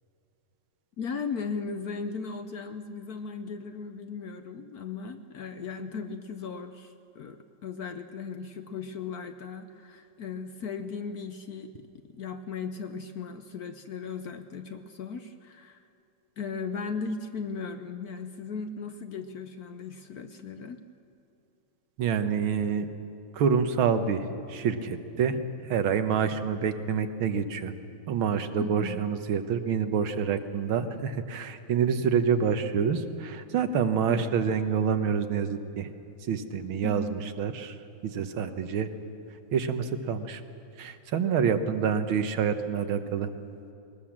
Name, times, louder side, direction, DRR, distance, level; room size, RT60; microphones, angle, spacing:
voice 1, 1.0-15.9 16.4-20.8 28.6-29.0 34.1-34.2 36.8-37.2, left 5 dB, 60° left, 8 dB, 1.0 m, -37 dB
voice 2, 22.0-22.9 23.3-27.7 28.1-35.9 36.2-38.9 39.5-40.4 40.8-43.3, right 6 dB, 80° right, 9 dB, 1.9 m, -27 dB
20.5 x 19.5 x 7.3 m, 2.7 s
omnidirectional pair, 2.2 m